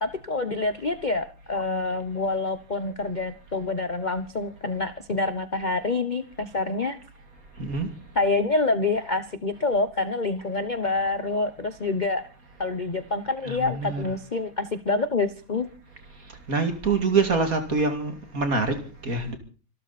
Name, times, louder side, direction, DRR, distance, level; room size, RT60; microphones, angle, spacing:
voice 1, 0.0-7.0 8.2-12.3 12.6-15.7, left 3 dB, 35° left, 0.8 m, -27 dB
voice 2, 7.6-7.9 13.4-14.1 16.5-19.4, right 4 dB, 40° right, 2.9 m, -25 dB
26.0 x 13.0 x 4.2 m
omnidirectional pair, 2.2 m